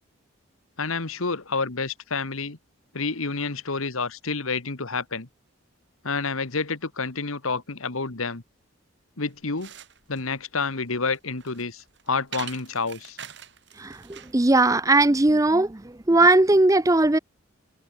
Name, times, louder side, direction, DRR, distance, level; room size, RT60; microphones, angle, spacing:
voice 1, 0.8-2.6 2.9-5.3 6.0-8.4 9.2-9.7 10.1-13.2, left 4 dB, 75° left, 1.7 m, -29 dB
sound 1, 9.2-14.4, right 9 dB, 55° right, 6.8 m, -44 dB
voice 2, 13.8-15.8 16.1-17.2, right 2 dB, 15° right, 0.5 m, -19 dB
head